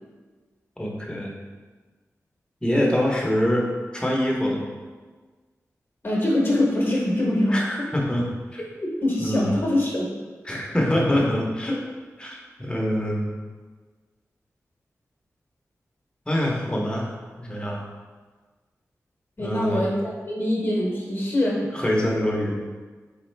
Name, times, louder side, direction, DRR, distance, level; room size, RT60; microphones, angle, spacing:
voice 1, 0.8-1.3 2.6-3.6 3.9-4.7 7.5-8.2 8.5-8.6 9.2-9.6 10.4-11.8 12.2-13.3 16.3-17.1 17.4-17.8 19.4-19.9 21.7-22.5, left 1 dB, 15° left, -2 dB, 0.9 m, -24 dB
voice 2, 6.0-7.9 8.8-10.1 19.4-21.6, left 1 dB, 40° left, -4 dB, 1.0 m, -24 dB
3.6 x 3.2 x 3.2 m, 1.4 s
cardioid pair, 45°, 6 cm